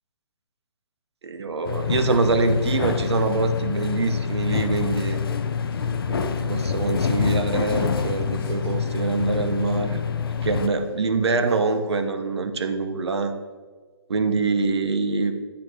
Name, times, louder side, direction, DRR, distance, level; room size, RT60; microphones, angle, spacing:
voice 1, 1.2-5.2 6.1-10.0 10.4-13.3 14.1-15.3, right 4 dB, 85° right, 8 dB, 0.8 m, -24 dB
sound 1, 1.6-10.7, left 6 dB, 60° left, 0.5 m, -26 dB
Male speech man speaking, 4.8-7.8 8.1-12.2, left 2 dB, 10° left, 1.0 m, -46 dB
8.5 x 2.9 x 6.1 m, 1.4 s
hypercardioid pair, 165°, 14 cm